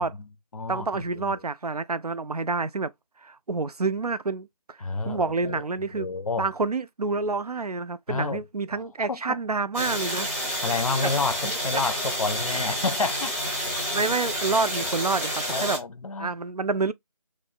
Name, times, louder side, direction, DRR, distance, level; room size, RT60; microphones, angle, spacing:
voice 1, 0.0-1.4 4.8-5.6 5.9-6.5 8.1-8.4 9.1-9.4 10.6-13.4 15.5-16.3, left 4 dB, 65° left, 0.5 m, -30 dB
voice 2, 0.7-2.9 3.2-4.8 5.1-6.1 6.4-10.3 11.0-11.1 11.4-11.5 13.9-15.8 16.2-16.9, right 4 dB, 85° right, 0.4 m, -28 dB
sound 1, 9.7-15.8, equal, 10° right, 0.7 m, -29 dB
3.1 x 2.1 x 4.0 m
figure-of-eight pair, 165°, 19 cm